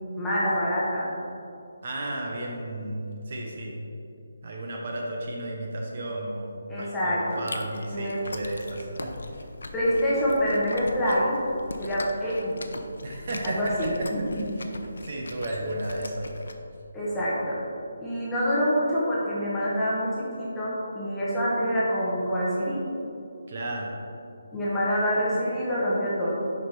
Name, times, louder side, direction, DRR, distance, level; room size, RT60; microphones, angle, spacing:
voice 1, 0.2-1.1 6.7-7.4 7.9-8.2 9.7-11.3 11.8-12.6 13.4-14.6 16.9-17.6 18.0-22.8 24.5-26.3, equal, 5° left, -9 dB, 1.1 m, -26 dB
voice 2, 1.8-3.9 4.4-9.5 13.0-16.4 23.5-24.0, right 1 dB, 40° right, -1 dB, 0.8 m, -34 dB
Chewing mastication, 7.3-16.5, left 2 dB, 80° left, 0.7 m, -40 dB
6.4 x 5.4 x 4.3 m, 2.6 s
hypercardioid pair, 175°, 0 cm